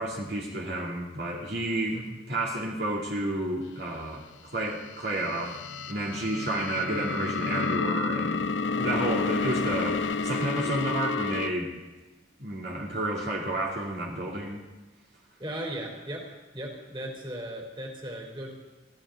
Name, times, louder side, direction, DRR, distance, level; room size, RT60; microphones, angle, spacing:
voice 1, 0.0-2.0 2.3-5.6 5.9-11.7 12.4-14.6, right 1 dB, 60° right, -3 dB, 3.0 m, -31 dB
sound 1, 5.0-11.5, left 4 dB, 85° left, 0.8 m, -30 dB
voice 2, 15.4-16.2 16.5-18.5, right 1 dB, 25° right, 1 dB, 3.7 m, -37 dB
22.5 x 16.0 x 3.9 m, 1.2 s
head